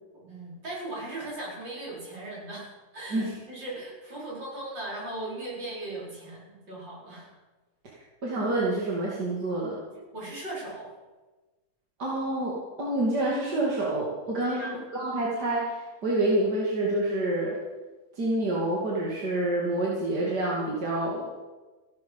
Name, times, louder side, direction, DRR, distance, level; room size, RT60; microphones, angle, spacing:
voice 1, 0.1-7.3 10.1-10.9 14.4-14.8, right 2 dB, 85° right, -5 dB, 5.7 m, -38 dB
voice 2, 8.2-9.8 12.0-17.6 18.2-21.2, right 1 dB, 65° right, -4 dB, 3.2 m, -27 dB
15.5 x 12.5 x 5.6 m, 1.2 s
omnidirectional pair, 2.0 m